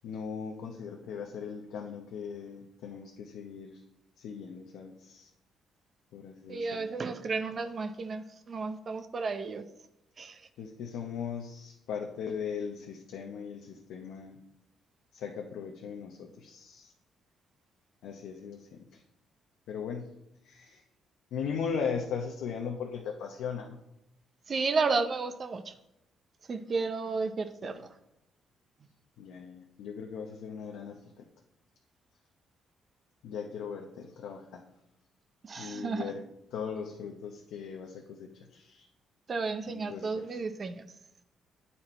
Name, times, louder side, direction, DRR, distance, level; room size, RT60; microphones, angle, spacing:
voice 1, 0.0-3.8 4.2-5.3 6.1-6.9 10.6-14.4 15.1-16.9 18.0-19.0 19.7-20.2 20.4-20.8 21.3-23.8 27.6-27.8 29.2-31.0 33.2-34.6 35.6-36.2 36.5-38.9 39.7-40.4, left 6 dB, 85° left, 2 dB, 0.7 m, -38 dB
voice 2, 6.5-9.6 10.2-10.5 24.5-25.7 26.5-27.9 35.4-36.1 39.3-40.8, right 4 dB, 45° right, 9 dB, 0.6 m, -32 dB
8.8 x 4.2 x 4.3 m, 0.84 s
cardioid pair, 90°, 0 cm